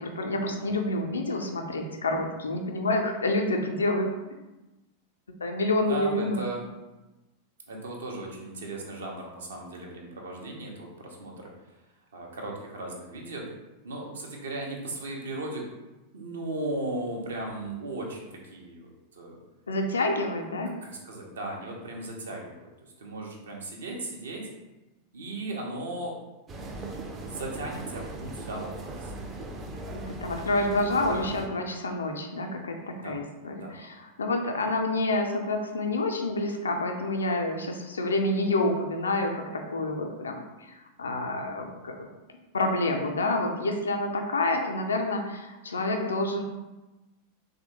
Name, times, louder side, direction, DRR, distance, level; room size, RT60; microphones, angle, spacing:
voice 1, 0.0-4.1 5.4-6.4 19.7-20.7 29.9-42.0 42.5-46.4, left 2 dB, 70° left, 3 dB, 0.4 m, -28 dB
voice 2, 0.6-0.9 5.8-6.6 7.7-11.5 12.1-13.4 13.8-15.7 16.1-19.4 20.8-24.5 25.1-26.1 27.2-29.2 31.2-31.3 32.9-33.2 33.6-33.7, right 2 dB, 65° right, -1 dB, 0.6 m, -37 dB
sound 1, 26.5-31.5, right 2 dB, 20° right, 0.4 m, -38 dB
3.3 x 2.1 x 3.0 m, 1.1 s
figure-of-eight pair, 90°, 0 cm